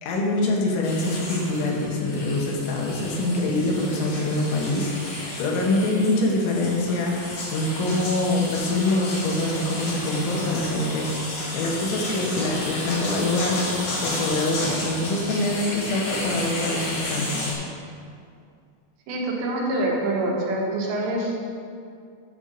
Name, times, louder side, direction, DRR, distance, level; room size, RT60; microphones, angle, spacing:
voice 1, 0.0-17.4, left 2 dB, 80° left, -1 dB, 3.5 m, -25 dB
sound 1, 0.8-17.5, left 1 dB, 65° left, 1.5 m, -32 dB
voice 2, 19.1-21.4, right 1 dB, 75° right, -2 dB, 3.1 m, -25 dB
11.0 x 6.9 x 3.8 m, 2.3 s
omnidirectional pair, 5.4 m